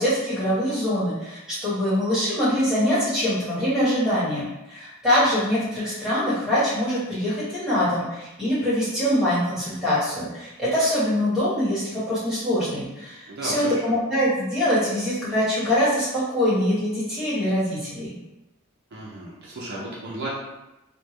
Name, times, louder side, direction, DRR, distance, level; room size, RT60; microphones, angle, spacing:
voice 1, 0.0-18.1, equal, ahead, -12 dB, 1.4 m, -24 dB
voice 2, 13.3-13.7 18.9-20.3, right 1 dB, 50° right, -6 dB, 0.6 m, -34 dB
3.3 x 2.1 x 3.1 m, 0.97 s
head